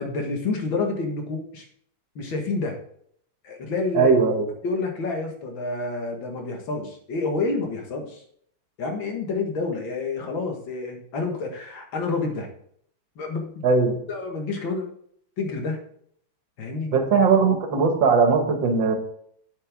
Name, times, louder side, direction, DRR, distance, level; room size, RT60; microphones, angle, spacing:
voice 1, 0.0-1.7 2.2-2.8 3.4-4.1 4.6-8.2 8.8-12.5 13.2-13.6 14.1-14.9 15.4-15.8 16.6-16.9, left 3 dB, 75° left, 2 dB, 2.4 m, -28 dB
voice 2, 3.9-4.5 13.6-14.0 16.9-18.9, right 5 dB, 75° right, 5 dB, 2.0 m, -19 dB
7.8 x 7.7 x 3.6 m, 0.65 s
omnidirectional pair, 2.1 m